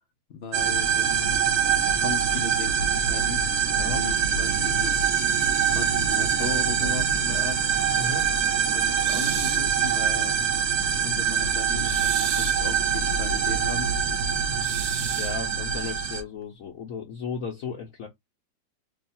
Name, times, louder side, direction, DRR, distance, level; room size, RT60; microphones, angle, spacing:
voice 1, 0.3-3.4 3.9-5.1 5.7-7.7 8.7-10.4 10.9-13.9, left 5 dB, 80° left, 0.5 m, -37 dB
sound 1, 0.5-16.2, right 7 dB, 60° right, 1.2 m, -24 dB
voice 2, 3.7-4.0 7.9-8.3 15.0-18.1, left 5 dB, 55° left, 1.0 m, -35 dB
sound 2, 9.0-9.7 11.8-12.7 14.6-15.4, right 10 dB, 80° right, 0.7 m, -35 dB
3.1 x 2.3 x 4.2 m
omnidirectional pair, 2.0 m